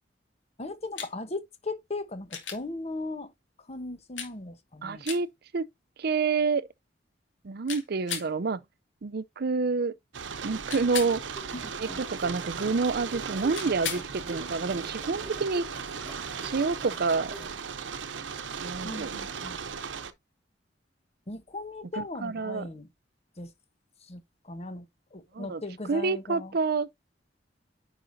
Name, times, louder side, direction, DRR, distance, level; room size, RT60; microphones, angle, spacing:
voice 1, 0.6-3.3 3.7-5.1 11.5-12.0 18.8-19.6 21.3-22.9 23.4-23.5 24.1-24.9 25.1-26.5, left 2 dB, 35° left, 1.1 m, -38 dB
sound 1, 1.0-1.1 2.3-2.6 4.2-4.3 5.0-5.2 7.7-8.3 10.7-11.2 13.5-14.1 16.3-16.4, left 7 dB, 85° left, 2.2 m, -35 dB
voice 2, 4.8-5.3 5.5-5.7 6.0-6.6 7.4-8.6 9.0-9.9 10.4-11.2 11.8-15.7 16.4-17.3 18.6-19.2 22.0-22.7 25.3-25.6 25.9-26.9, right 4 dB, 55° right, 0.5 m, -28 dB
sound 2, 10.1-20.1, right 6 dB, 90° right, 0.8 m, -37 dB
sound 3, 11.3-17.5, right 2 dB, 5° right, 3.8 m, -47 dB
9.9 x 4.9 x 2.7 m
head